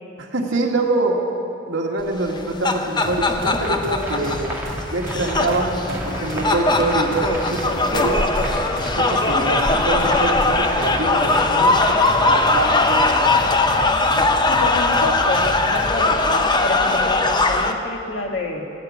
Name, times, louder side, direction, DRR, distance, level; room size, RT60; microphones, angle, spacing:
voice 1, 0.2-1.2 1.7-4.5 4.9-8.3 9.0-13.4, right 2 dB, 85° right, -1 dB, 1.9 m, -25 dB
sound 1, 2.3-17.7, left 2 dB, 25° left, 0.7 m, -20 dB
sound 2, 3.0-16.1, equal, 65° right, 3.3 m, -33 dB
sound 3, 3.6-13.3, right 1 dB, 10° right, 2.0 m, -34 dB
voice 2, 14.5-18.6, left 2 dB, 75° left, 2 dB, 1.7 m, -28 dB
15.0 x 7.6 x 9.6 m, 2.7 s
head